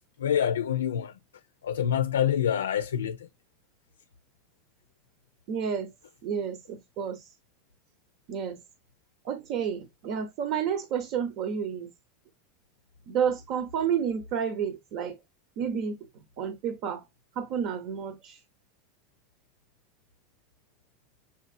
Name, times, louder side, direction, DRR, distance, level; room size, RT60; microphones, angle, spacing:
voice 1, 0.2-1.1 1.6-3.2, left 9 dB, 85° left, 0.4 m, -26 dB
voice 2, 5.5-5.9 6.2-7.3 8.3-8.6 9.2-11.9 13.1-15.2 15.6-16.0 16.4-17.0 17.4-18.4, right 7 dB, 55° right, 1.0 m, -30 dB
7.1 x 3.0 x 2.5 m
hypercardioid pair, 90°, 0 cm